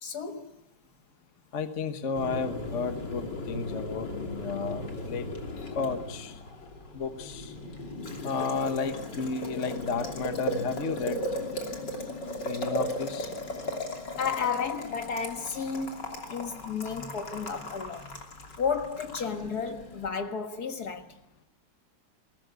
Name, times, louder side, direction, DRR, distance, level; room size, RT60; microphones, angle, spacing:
voice 1, 0.0-0.5 14.2-18.2 18.6-21.2, left 6 dB, 65° left, 2.1 m, -33 dB
voice 2, 1.5-5.3 5.7-6.4 6.9-7.5 8.2-11.3 12.4-13.3, left 5 dB, 45° left, 1.5 m, -32 dB
Boiling, 2.1-20.1, left 1 dB, 80° left, 3.6 m, -37 dB
22.0 x 18.0 x 9.5 m
omnidirectional pair, 1.9 m